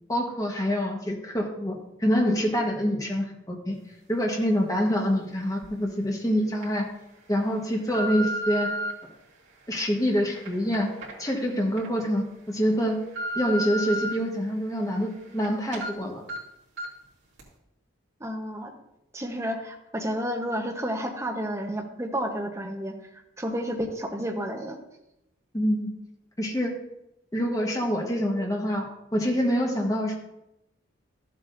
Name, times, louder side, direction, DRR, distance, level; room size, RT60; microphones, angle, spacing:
voice 1, 0.1-3.7 4.1-6.9 7.3-8.7 9.7-10.9 11.2-13.0 13.3-16.2 25.5-25.9 26.4-26.7 27.3-30.2, equal, 15° left, 1 dB, 1.2 m, -26 dB
sound 1, 5.6-5.7 6.3-6.7 7.3-8.9 9.6-11.9 12.3-12.4 12.8-14.1 14.6-15.5 15.7-15.9 16.3-16.4 16.8-17.0 17.4-17.5, right 1 dB, 65° right, 2.5 m, -34 dB
voice 2, 18.2-18.7 19.1-24.8, equal, 15° right, 2 dB, 0.9 m, -31 dB
13.0 x 7.7 x 2.6 m, 0.87 s
head